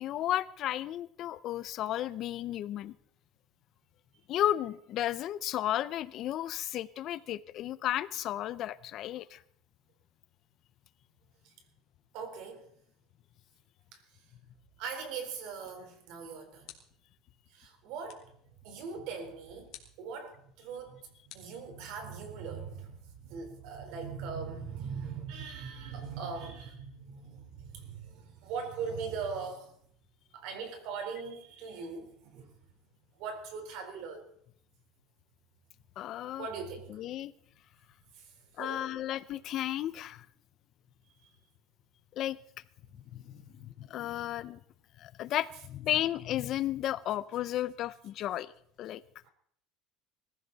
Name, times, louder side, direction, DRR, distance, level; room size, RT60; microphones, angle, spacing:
voice 1, 0.0-2.9 4.3-9.4 36.0-36.5 36.9-37.3 38.6-40.3 42.2-42.4 43.1-44.6 45.0-48.5 48.8-49.0, left 12 dB, 45° left, 0.6 m, -33 dB
voice 2, 12.1-12.7 13.9-14.2 14.8-16.7 17.5-18.3 18.6-29.7 30.3-32.5 33.1-34.3 36.3-37.0 38.1-39.1 41.2-41.3 49.2-49.3, right 5 dB, 65° right, 4.1 m, -41 dB
sound 1, 16.6-17.2 18.1-18.4 19.7-20.1 21.3-22.2, left 12 dB, 60° left, 2.6 m, -54 dB
21.0 x 15.0 x 4.1 m
cardioid pair, 160°, 0 cm